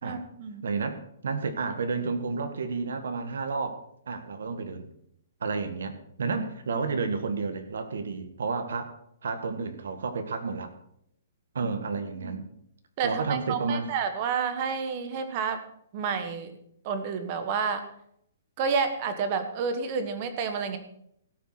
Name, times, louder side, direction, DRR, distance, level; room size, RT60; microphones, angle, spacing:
voice 1, 0.0-0.7 12.1-12.4 13.0-15.6 15.9-16.6 16.8-17.8 18.6-20.8, right 6 dB, 25° right, 9 dB, 1.3 m, -30 dB
voice 2, 0.6-4.9 5.4-10.7 11.5-12.4 13.0-13.9, right 4 dB, 80° right, 8 dB, 1.9 m, -31 dB
17.0 x 7.1 x 6.0 m, 0.71 s
hypercardioid pair, 175°, 0 cm